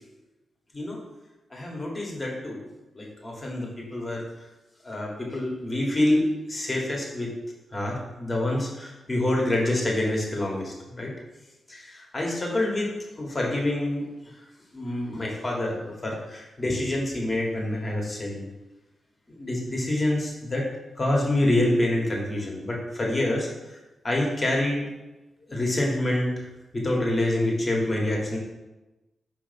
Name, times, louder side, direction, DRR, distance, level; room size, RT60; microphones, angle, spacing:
voice 1, 1.5-2.6 2.9-4.2 4.8-7.3 7.7-11.1 11.7-12.9 13.2-14.0 14.7-18.4 19.4-20.7 21.0-23.5 24.0-24.9 25.5-26.3 26.7-28.4, left 1 dB, 35° left, -2 dB, 1.7 m, -26 dB
5.2 x 3.5 x 5.2 m, 1.1 s
cardioid pair, 65°, 0 cm